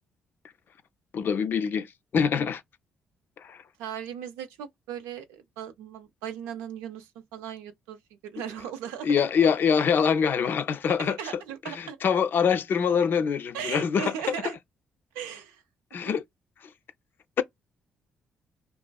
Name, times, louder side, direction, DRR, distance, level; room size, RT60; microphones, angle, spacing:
voice 1, 1.1-1.9 2.1-2.6 3.4-3.6 9.0-11.2 11.7-14.1 15.9-16.2, left 6 dB, 55° left, 0.4 m, -24 dB
voice 2, 3.8-8.0 8.2-9.5 10.9-12.0 13.5-14.6 15.1-15.6 15.9-16.2, right 8 dB, 90° right, 0.5 m, -37 dB
2.4 x 2.3 x 2.2 m
supercardioid pair, 55°, 4 cm